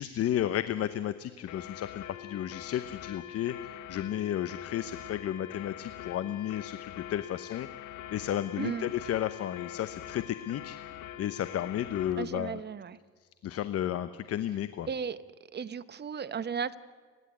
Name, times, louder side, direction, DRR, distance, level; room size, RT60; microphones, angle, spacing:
voice 1, 0.0-7.7 8.1-10.8 11.2-12.6 13.4-14.9, left 11 dB, 45° left, 13 dB, 1.0 m, -33 dB
sound 1, 1.5-12.2, left 12 dB, 65° left, 1.5 m, -44 dB
voice 2, 8.6-8.9 12.2-13.0 14.9-15.2 15.5-16.8, right 6 dB, 30° right, 15 dB, 1.1 m, -35 dB
29.5 x 11.0 x 9.5 m, 1.5 s
supercardioid pair, 90°, 32 cm